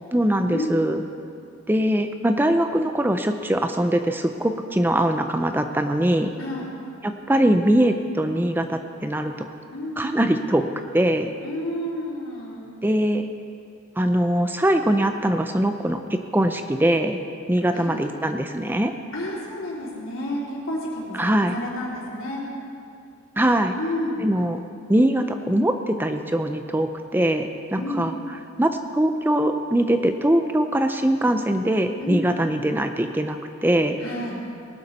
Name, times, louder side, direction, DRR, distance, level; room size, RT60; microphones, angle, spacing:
voice 1, 0.1-1.0 1.7-6.3 7.0-9.5 10.0-10.7 10.9-11.3 12.8-13.3 14.0-17.2 17.5-18.9 21.1-21.6 23.4-23.7 24.2-24.6 24.9-28.1 28.6-34.0, right 1 dB, 10° right, 7 dB, 0.5 m, -22 dB
voice 2, 6.4-6.7 9.7-10.1 11.4-12.7 17.7-18.2 19.1-22.4 23.8-24.3 27.7-28.0 32.0-32.3 34.0-34.4, left 1 dB, 85° left, -5 dB, 3.8 m, -30 dB
19.0 x 12.0 x 4.2 m, 2.4 s
head